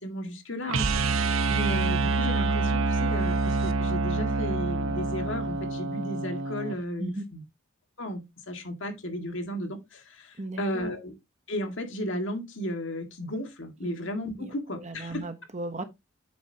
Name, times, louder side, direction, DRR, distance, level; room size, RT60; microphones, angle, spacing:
voice 1, 0.0-7.4 8.0-11.1 11.5-15.2, equal, 60° left, 2.0 m, -34 dB
sound 1, 0.7-6.8, right 3 dB, 70° right, 0.8 m, -26 dB
voice 2, 10.4-11.0 14.4-15.8, right 2 dB, 35° right, 1.0 m, -36 dB
8.7 x 7.1 x 2.8 m
head